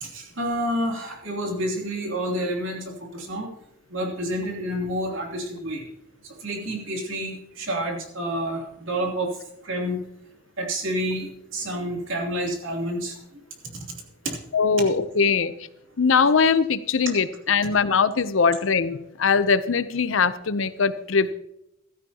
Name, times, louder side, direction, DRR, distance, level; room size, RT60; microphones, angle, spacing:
voice 1, 0.0-3.5 3.9-5.8 6.4-9.3 9.6-10.0 10.6-13.1 14.2-14.3, right 1 dB, 80° right, 0 dB, 3.0 m, -29 dB
voice 2, 14.5-15.5 16.0-21.3, left 5 dB, 75° left, 13 dB, 0.7 m, -21 dB
15.5 x 13.0 x 2.9 m, 0.83 s
head